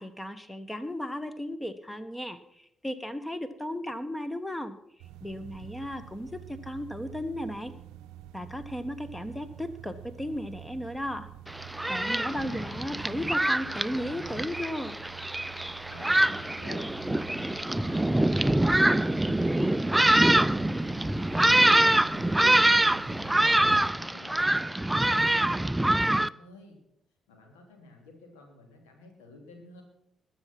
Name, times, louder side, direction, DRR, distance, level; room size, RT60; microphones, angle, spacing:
voice 1, 0.0-4.8 5.2-7.7 8.3-11.3 11.9-15.0, left 1 dB, 10° left, 12 dB, 1.1 m, -35 dB
sound 1, 5.0-23.9, right 12 dB, 70° right, 0.6 m, -47 dB
Thunderstorm, 11.5-26.3, right 1 dB, 10° right, 0.4 m, -25 dB
voice 2, 12.1-12.8 15.8-19.9 20.2-23.6 23.8-26.8 27.3-29.8, left 3 dB, 75° left, 3 dB, 2.9 m, -52 dB
21.0 x 7.1 x 5.9 m, 0.77 s
figure-of-eight pair, 40°, 0 cm